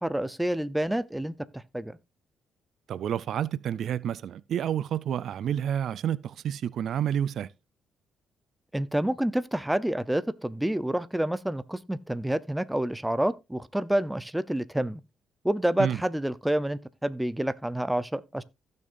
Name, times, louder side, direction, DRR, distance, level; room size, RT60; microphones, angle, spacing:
voice 1, 0.0-2.0 8.7-15.0 15.4-18.4, right 1 dB, 5° right, 0.7 m, -28 dB
voice 2, 2.9-7.5 15.8-16.0, right 9 dB, 65° right, 0.4 m, -29 dB
15.5 x 6.6 x 2.6 m
cardioid pair, 90°, 0 cm